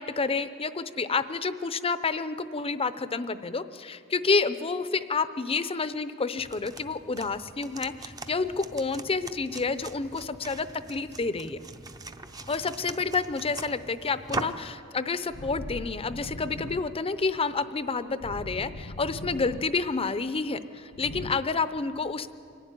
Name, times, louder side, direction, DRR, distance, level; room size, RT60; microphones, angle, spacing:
voice 1, 0.0-11.6 12.5-22.3, left 4 dB, 25° left, 13 dB, 0.6 m, -29 dB
sound 1, 6.4-14.7, right 3 dB, 15° right, 0.6 m, -41 dB
sound 2, 14.3-21.3, left 1 dB, 80° left, 1.1 m, -42 dB
24.0 x 12.0 x 9.5 m, 2.6 s
head